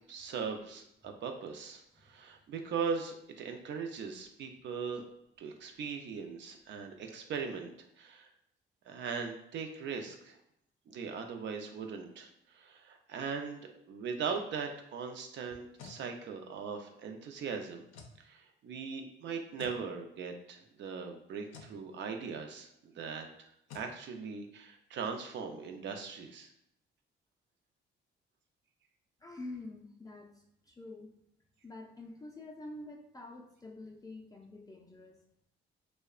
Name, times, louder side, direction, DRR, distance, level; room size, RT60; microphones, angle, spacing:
voice 1, 0.1-5.0 5.4-8.3 8.9-10.4 10.9-17.8 18.2-23.5 23.7-26.5, right 5 dB, 65° right, 4 dB, 0.4 m, -39 dB
sound 1, 15.5-16.0 17.9-18.2 19.6-19.8 21.5-21.8 23.7-23.9, left 5 dB, 90° left, 0.5 m, -50 dB
voice 2, 29.2-30.3 30.7-31.1 31.6-35.2, left 2 dB, 20° left, -1 dB, 0.4 m, -47 dB
2.7 x 2.1 x 2.3 m, 0.76 s
cardioid pair, 90°, 20 cm